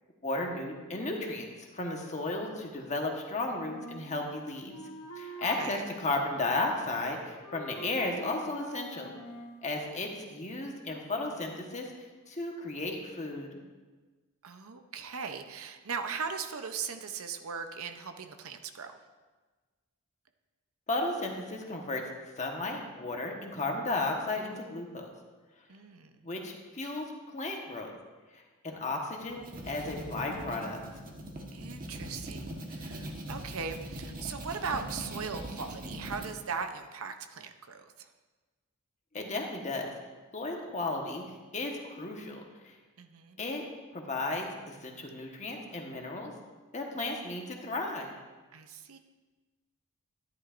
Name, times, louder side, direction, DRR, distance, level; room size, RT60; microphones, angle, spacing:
voice 1, 0.2-4.8 5.2-9.1 9.6-13.6 20.9-22.0 22.4-25.1 26.2-27.9 28.3-30.8 39.1-39.9 40.3-41.2 41.5-42.7 43.4-43.6 43.9-46.3 46.7-48.1, left 2 dB, 35° left, 1 dB, 1.2 m, -34 dB
Wind instrument woodwind instrument, 3.7-5.8 6.1-7.2 7.4-9.6, right 1 dB, 75° left, 1.0 m, -46 dB
voice 2, 14.4-19.0 25.7-26.2 31.5-38.1 43.0-43.4 48.5-49.0, right 5 dB, 65° right, 7 dB, 0.7 m, -39 dB
sound 1, 29.2-36.3, right 1 dB, 40° right, 1.3 m, -41 dB
13.0 x 10.5 x 2.5 m, 1.3 s
head